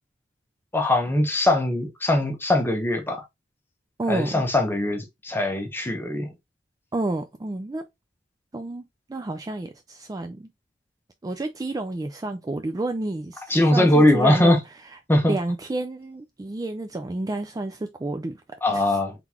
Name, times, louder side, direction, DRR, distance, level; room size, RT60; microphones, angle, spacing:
voice 1, 0.7-3.2 4.1-6.3 13.5-14.6 15.1-15.3 18.6-19.1, left 1 dB, 10° left, 0.9 m, -21 dB
voice 2, 4.0-4.4 6.9-7.8 8.5-10.5 11.2-15.0 15.3-18.4 18.7-19.0, right 2 dB, 20° right, 0.4 m, -30 dB
3.8 x 3.6 x 2.9 m
head